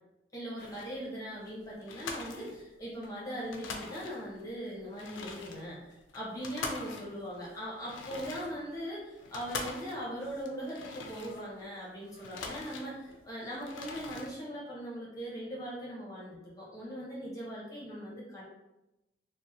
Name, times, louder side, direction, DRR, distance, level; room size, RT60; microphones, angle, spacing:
voice 1, 0.3-5.8 6.1-18.4, equal, 20° left, -7 dB, 0.8 m, -40 dB
sound 1, 0.6-1.0 1.4-1.5 1.8-3.1 3.4-4.4 4.8-11.7 12.0-13.2 13.5-14.3, left 4 dB, 90° left, 0.4 m, -43 dB
2.7 x 2.1 x 2.6 m, 0.95 s
head